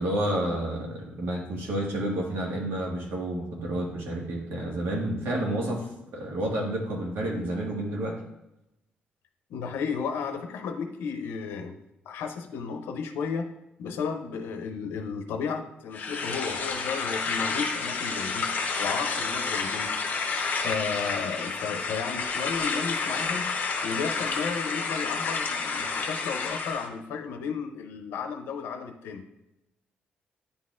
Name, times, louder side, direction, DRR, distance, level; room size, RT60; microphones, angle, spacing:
voice 1, 0.0-5.8 6.1-8.2, right 1 dB, 80° right, -1 dB, 1.6 m, -30 dB
voice 2, 9.5-11.7 12.1-13.5 13.8-18.5 18.8-19.9 20.6-29.2, left 6 dB, 90° left, 6 dB, 0.6 m, -33 dB
sound 1, 15.9-26.9, left 4 dB, 50° left, 0.9 m, -30 dB
9.9 x 4.1 x 2.5 m, 0.89 s
cardioid pair, 120°, 4 cm